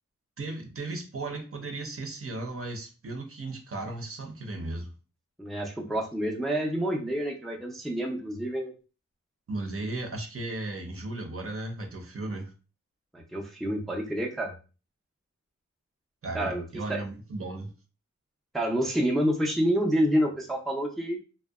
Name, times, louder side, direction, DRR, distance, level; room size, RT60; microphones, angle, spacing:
voice 1, 0.4-4.9 9.5-12.5 16.2-17.7, right 2 dB, 50° right, 3 dB, 0.6 m, -36 dB
voice 2, 5.4-8.7 13.1-14.5 16.3-17.0 18.5-21.3, equal, ahead, 1 dB, 0.4 m, -28 dB
2.7 x 2.1 x 2.3 m, 0.34 s
wide cardioid pair, 60°, 30 cm